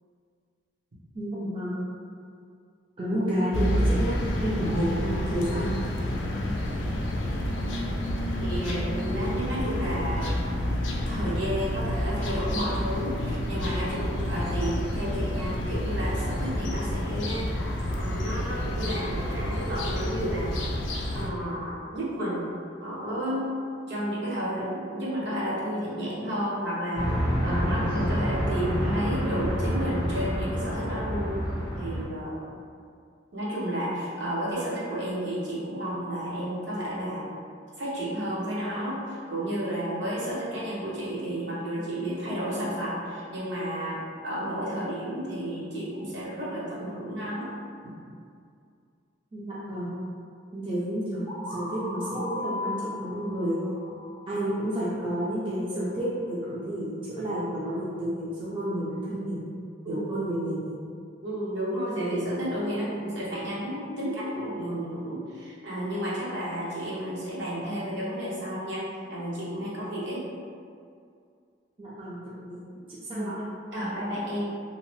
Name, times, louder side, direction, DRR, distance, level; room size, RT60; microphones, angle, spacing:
voice 1, 1.1-1.9 3.0-5.8 49.3-50.0 50.5-53.6 54.3-59.5 59.9-60.8 71.8-73.3, equal, 30° right, -8 dB, 0.4 m, -30 dB
sound 1, 3.5-21.3, left 1 dB, 90° left, 0.4 m, -29 dB
voice 2, 8.4-10.4 11.1-17.5 17.9-20.5 21.1-22.4 22.8-23.5 23.9-27.1 27.4-31.4 31.7-32.3 33.3-37.3 37.8-47.5 47.8-47.9 59.8-60.2 61.2-68.8 69.1-70.2 73.1-73.3 73.7-74.6, equal, 70° right, -8 dB, 0.9 m, -31 dB
sound 2, 26.9-32.0, equal, 90° right, 1.4 m, -28 dB
sound 3, 51.3-55.0, left 2 dB, 30° left, 0.4 m, -37 dB
2.7 x 2.0 x 3.0 m, 2.3 s
head